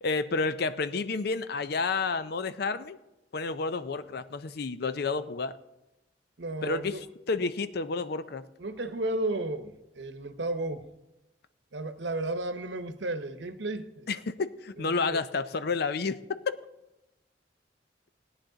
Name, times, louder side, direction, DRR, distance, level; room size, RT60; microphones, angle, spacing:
voice 1, 0.0-3.0 3.3-5.6 6.6-8.4 14.1-16.6, left 4 dB, 60° left, 13 dB, 0.5 m, -30 dB
voice 2, 6.4-7.0 8.6-10.8 11.7-14.1 14.8-15.2, right 2 dB, 75° right, 10 dB, 0.9 m, -33 dB
18.0 x 9.7 x 3.9 m, 0.99 s
head